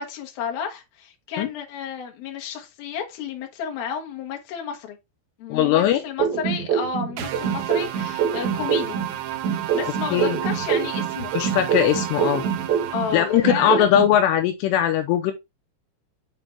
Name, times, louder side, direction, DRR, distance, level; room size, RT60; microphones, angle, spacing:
voice 1, 0.0-5.0 5.4-9.0 9.7-11.3 12.9-13.9, left 7 dB, 65° left, 2.9 m, -32 dB
voice 2, 5.5-6.0 10.1-10.4 11.3-12.4 13.1-15.3, left 10 dB, 85° left, 2.8 m, -20 dB
sound 1, 6.2-9.1 9.4-13.1 13.4-14.1, right 8 dB, 50° right, 2.8 m, -24 dB
sound 2, 7.2-13.7, right 12 dB, 80° right, 2.1 m, -32 dB
7.6 x 4.4 x 3.3 m
omnidirectional pair, 5.0 m